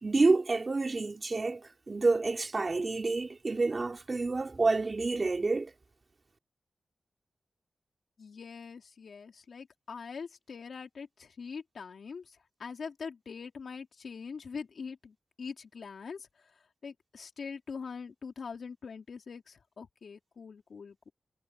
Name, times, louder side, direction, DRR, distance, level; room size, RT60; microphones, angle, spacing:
voice 1, 0.0-5.7, right 3 dB, 45° right, 3.6 m, -28 dB
voice 2, 8.2-21.1, left 5 dB, 75° left, 3.7 m, -43 dB
cardioid pair, 65°, 0 cm